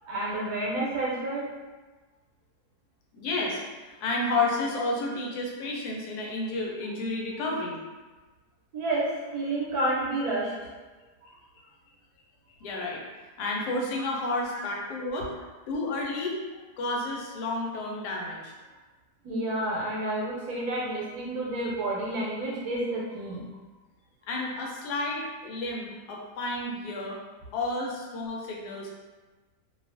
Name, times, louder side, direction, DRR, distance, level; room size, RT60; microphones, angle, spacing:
voice 1, 0.0-1.5 8.7-10.5 11.2-11.3 14.0-14.1 14.5-14.6 19.2-23.4, right 1 dB, 75° right, -5 dB, 1.1 m, -30 dB
voice 2, 3.1-7.8 12.6-15.3 15.7-16.3 16.8-18.5 24.3-27.2 27.5-28.9, left 2 dB, 80° left, -2 dB, 1.1 m, -31 dB
2.6 x 2.3 x 2.4 m, 1.3 s
omnidirectional pair, 1.7 m